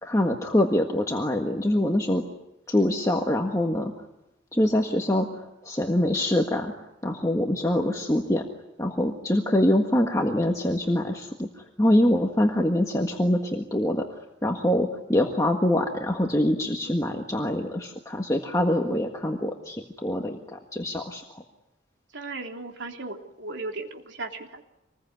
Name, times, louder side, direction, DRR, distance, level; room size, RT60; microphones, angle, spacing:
voice 1, 0.0-2.2 2.7-3.9 4.5-6.7 7.0-8.4 8.8-21.4, left 1 dB, 15° left, 2 dB, 1.6 m, -24 dB
voice 2, 22.1-24.6, right 3 dB, 70° right, 3 dB, 3.3 m, -36 dB
26.5 x 21.0 x 9.6 m, 0.89 s
head